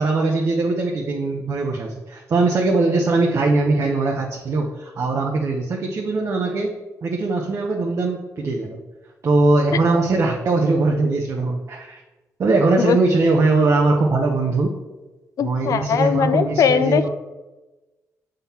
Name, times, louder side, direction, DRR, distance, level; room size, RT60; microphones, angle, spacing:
voice 1, 0.0-6.7 7.0-8.8 9.2-12.0 12.4-14.7 15.4-17.1, right 3 dB, 50° right, 1 dB, 0.9 m, -20 dB
voice 2, 15.4-17.0, left 7 dB, 65° left, 12 dB, 0.5 m, -19 dB
6.8 x 3.8 x 5.7 m, 1.1 s
cardioid pair, 90°, 6 cm